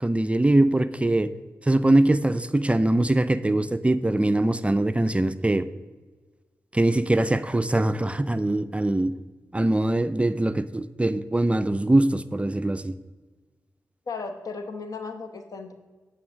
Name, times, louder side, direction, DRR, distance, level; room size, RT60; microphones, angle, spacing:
voice 1, 0.0-1.3 1.7-5.7 6.7-9.1 9.5-12.9, right 1 dB, 20° right, 12 dB, 0.4 m, -22 dB
voice 2, 14.1-15.7, left 4 dB, 65° left, 6 dB, 0.9 m, -35 dB
8.4 x 3.9 x 6.3 m, 1.3 s
cardioid pair, 40°, 6 cm